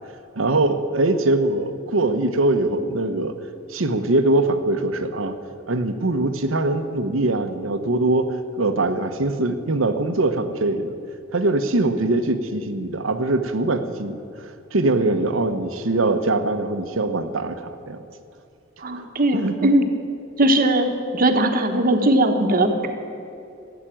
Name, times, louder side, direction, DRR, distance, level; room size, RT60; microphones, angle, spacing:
voice 1, 0.3-3.3 3.7-5.3 5.7-8.3 8.6-10.9 11.3-18.0 19.0-19.1 19.3-19.7, right 2 dB, 85° right, 9 dB, 1.0 m, -22 dB
voice 2, 18.8-19.9 20.4-22.9, right 1 dB, 45° right, 5 dB, 1.2 m, -19 dB
14.0 x 8.2 x 8.8 m, 2.7 s
head